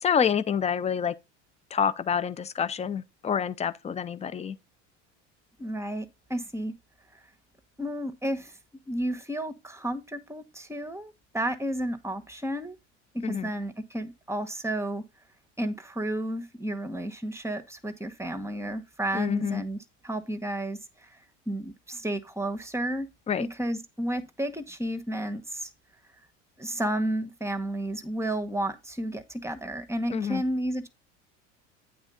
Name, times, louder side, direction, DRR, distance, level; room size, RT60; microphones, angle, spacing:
voice 1, 0.0-1.1 1.7-4.6 13.2-13.5 19.1-19.6 23.3-23.5 30.1-30.4, left 7 dB, 15° left, 0.5 m, -27 dB
voice 2, 5.6-6.7 7.8-8.6 8.9-12.8 13.1-15.0 15.6-19.8 20.0-21.1 21.5-23.1 23.4-25.7 26.6-30.9, right 1 dB, 5° right, 1.1 m, -32 dB
8.8 x 3.7 x 5.5 m
hypercardioid pair, 80°, 38 cm